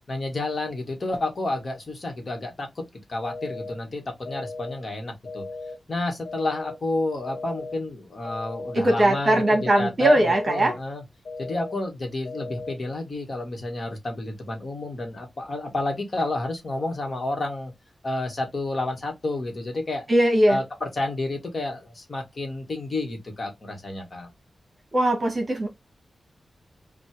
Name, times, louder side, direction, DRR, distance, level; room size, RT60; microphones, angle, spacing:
voice 1, 0.1-2.8 3.1-5.4 5.9-11.0 11.4-17.7 18.0-20.1 20.5-24.3, left 2 dB, 40° left, 1.5 m, -30 dB
sound 1, 3.3-3.8 4.3-4.8 5.3-5.8 6.3-6.8 7.3-7.8 8.3-8.8 9.3-9.8 10.3-10.8 11.3-11.8 12.3-12.8, left 3 dB, 80° left, 1.0 m, -36 dB
voice 2, 8.7-10.7 20.1-20.6 24.9-25.7, right 1 dB, 30° right, 1.2 m, -20 dB
5.3 x 2.4 x 3.1 m
wide cardioid pair, 175°, 0 cm